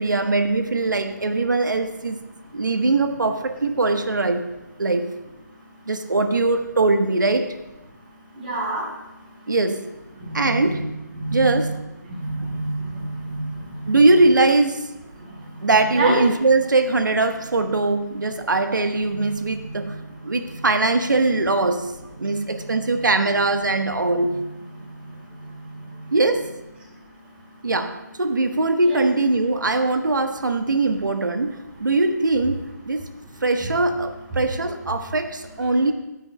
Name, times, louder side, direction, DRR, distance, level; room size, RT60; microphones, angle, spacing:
voice 1, 0.0-2.3 2.5-4.5 4.8-5.2 5.9-7.5 9.5-9.9 10.3-10.8 11.3-11.7 12.4-12.5 13.9-14.8 15.6-21.9 22.2-24.5 26.1-26.5 27.6-33.1 33.4-35.9, right 3 dB, 80° right, 7 dB, 1.2 m, -21 dB
voice 2, 8.4-8.8 10.2-10.8 11.2-11.6 12.4-13.4 15.9-16.2 28.8-29.1, right 2 dB, 30° right, -2 dB, 4.8 m, -27 dB
23.0 x 9.7 x 2.2 m, 0.99 s
figure-of-eight pair, 155°, 10 cm